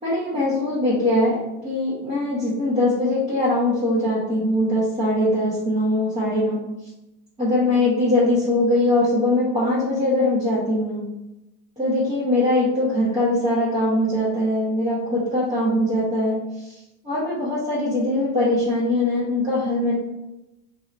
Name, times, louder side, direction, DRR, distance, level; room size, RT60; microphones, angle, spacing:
voice 1, 0.0-6.6 7.4-11.0 11.8-19.9, left 1 dB, 15° right, -10 dB, 1.2 m, -22 dB
2.9 x 2.8 x 2.6 m, 0.94 s
hypercardioid pair, 90°, 43 cm